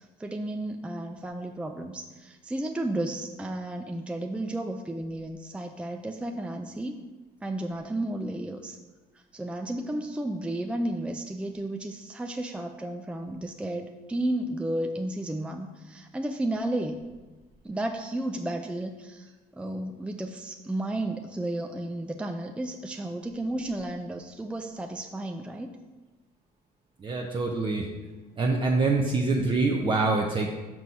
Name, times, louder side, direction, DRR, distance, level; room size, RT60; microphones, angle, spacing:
voice 1, 0.0-7.0 7.4-8.8 9.3-17.0 17.6-25.8, right 1 dB, 5° right, 4 dB, 0.5 m, -33 dB
voice 2, 27.0-27.9 28.4-30.5, right 3 dB, 30° right, -1 dB, 0.9 m, -25 dB
6.1 x 6.1 x 5.5 m, 1.2 s
cardioid pair, 110°, 17 cm